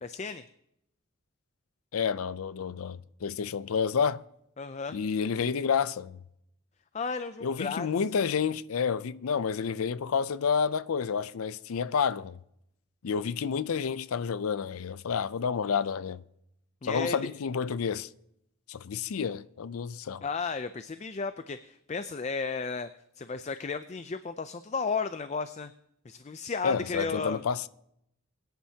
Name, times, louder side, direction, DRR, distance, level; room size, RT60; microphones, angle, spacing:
voice 1, 0.0-0.4 4.6-5.0 6.9-7.9 16.8-17.3 20.2-22.9 23.2-25.7 26.1-27.4, left 4 dB, 30° left, 0.4 m, -34 dB
voice 2, 1.9-4.2 4.9-6.2 7.4-12.4 13.0-16.2 16.8-18.1 18.7-20.2 26.6-27.7, left 6 dB, 90° left, 0.5 m, -29 dB
22.0 x 10.5 x 2.8 m
head